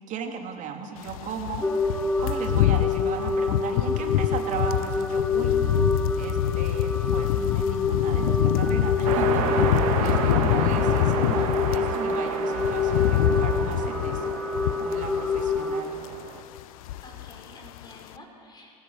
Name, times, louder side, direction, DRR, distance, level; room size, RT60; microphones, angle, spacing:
voice 1, 0.1-1.7 2.2-5.6 6.2-14.4 14.8-16.0, right 6 dB, 40° right, 3 dB, 3.0 m, -36 dB
sound 1, 1.0-12.0 12.3-15.7 16.0-16.3 16.6-17.4 17.6-17.9, left 13 dB, 60° left, 0.8 m, -26 dB
sound 2, 1.6-15.8, left 3 dB, 5° left, 1.3 m, -27 dB
sound 3, 9.0-16.4, right 7 dB, 60° right, 1.9 m, -31 dB
voice 2, 10.0-10.3 17.0-18.7, left 2 dB, 20° left, 0 dB, 6.0 m, -49 dB
26.0 x 15.0 x 6.7 m, 2.2 s
figure-of-eight pair, 80°, 20 cm